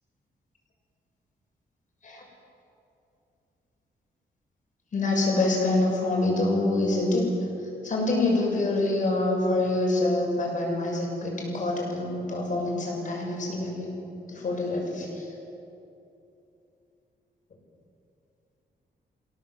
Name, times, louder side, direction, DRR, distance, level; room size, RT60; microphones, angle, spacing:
voice 1, 4.9-7.2 7.8-13.9 14.3-15.3, left 2 dB, 45° left, -1 dB, 6.6 m, -26 dB
27.0 x 17.0 x 8.0 m, 2.9 s
wide cardioid pair, 150°, 18 cm